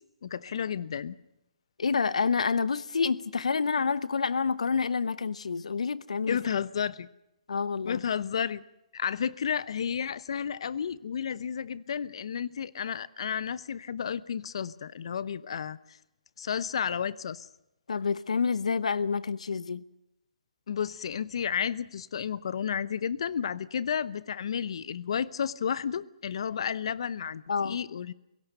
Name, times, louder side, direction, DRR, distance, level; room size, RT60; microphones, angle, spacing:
voice 1, 0.2-1.2 6.3-7.1 7.8-8.6 8.9-16.0 16.4-17.5 20.7-28.1, left 7 dB, 55° left, 19 dB, 0.9 m, -32 dB
voice 2, 1.8-6.4 7.5-8.0 17.9-19.8 27.5-27.8, left 5 dB, 85° left, 18 dB, 1.0 m, -28 dB
30.0 x 17.0 x 6.8 m, 0.87 s
hypercardioid pair, 165°, 4 cm